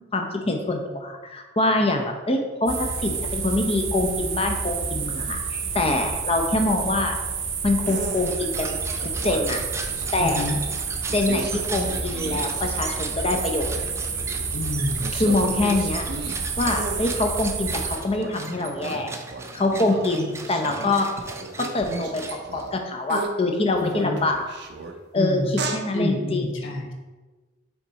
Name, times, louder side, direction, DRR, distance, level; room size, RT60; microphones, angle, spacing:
voice 1, 0.0-7.2 7.6-8.8 9.2-9.6 10.1-10.5 11.1-13.7 15.1-16.1 16.6-19.1 19.5-21.1 21.6-22.2 22.5-24.4 25.1-26.5, left 2 dB, 30° left, 4 dB, 0.7 m, -24 dB
sound 1, 2.7-18.0, right 5 dB, 85° right, 0.8 m, -29 dB
sound 2, 7.8-8.4 9.0-10.6 11.1-12.7 13.0-14.5 15.0-17.4 17.9-22.8 23.1-23.3 23.7-24.9 25.5-25.8, right 3 dB, 55° right, 0.6 m, -35 dB
sound 3, 8.2-22.8, right 3 dB, 15° right, 0.4 m, -38 dB
voice 2, 10.2-10.6 14.5-15.2 23.8-24.2 25.1-25.6 25.9-26.9, left 1 dB, 80° left, 2 dB, 0.9 m, -28 dB
5.9 x 4.2 x 4.0 m, 1.3 s
head